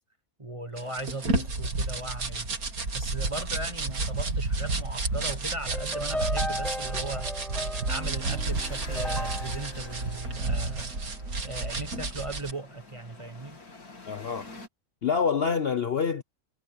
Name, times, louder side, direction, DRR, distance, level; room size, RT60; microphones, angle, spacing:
voice 1, 0.4-2.5 2.9-7.3 7.9-10.9 11.4-13.6, right 2 dB, 20° right, 1.3 m, -38 dB
sound 1, 0.7-14.7, left 3 dB, 85° left, 3.7 m, -51 dB
sound 2, 0.8-12.5, right 3 dB, 70° right, 2.8 m, -31 dB
sound 3, 5.7-11.1, equal, ahead, 0.4 m, -36 dB
voice 2, 14.1-14.5 15.0-16.2, left 6 dB, 50° left, 0.8 m, -26 dB
omnidirectional pair, 1.6 m